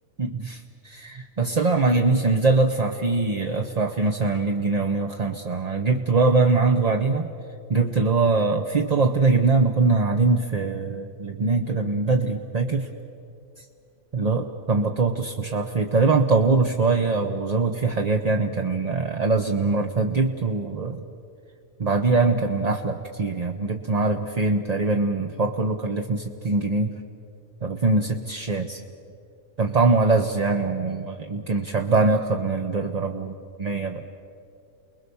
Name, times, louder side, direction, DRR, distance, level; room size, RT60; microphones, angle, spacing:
voice 1, 0.2-7.3 7.7-12.9 14.1-21.0 21.8-27.0 27.6-28.8 29.6-34.0, right 3 dB, 35° right, 4 dB, 0.8 m, -22 dB
29.5 x 21.0 x 7.0 m, 2.6 s
omnidirectional pair, 1.5 m